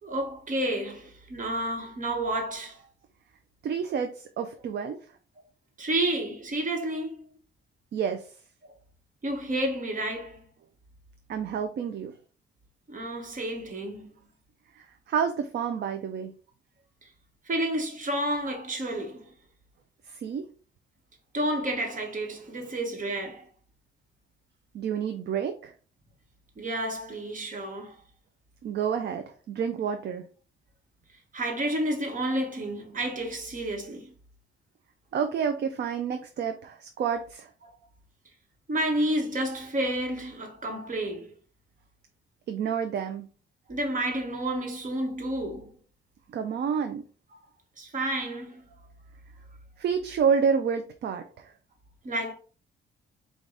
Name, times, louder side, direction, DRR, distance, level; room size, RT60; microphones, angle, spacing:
voice 1, 0.0-2.8 5.8-7.3 9.2-10.4 12.9-14.1 17.4-19.3 21.3-23.4 26.6-28.0 31.3-34.1 38.7-41.3 43.7-45.7 47.8-48.6 52.0-52.3, right 1 dB, 40° right, 1.5 m, -30 dB
voice 2, 3.6-5.0 7.9-8.3 11.3-12.1 14.7-16.3 20.1-20.5 24.7-25.7 28.6-30.2 35.1-37.5 42.5-43.3 46.3-47.0 49.8-51.5, right 7 dB, 55° right, 0.6 m, -29 dB
4.7 x 2.6 x 3.9 m
cardioid pair, 90°, 20 cm